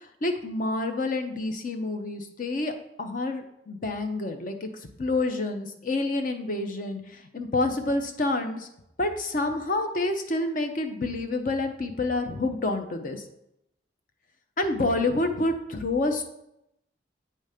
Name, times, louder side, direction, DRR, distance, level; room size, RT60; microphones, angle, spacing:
voice 1, 0.2-2.7 3.0-4.7 5.0-7.0 7.3-8.7 9.0-13.2 14.6-16.2, left 2 dB, 50° left, 6 dB, 0.8 m, -28 dB
7.9 x 3.3 x 5.0 m, 0.82 s
head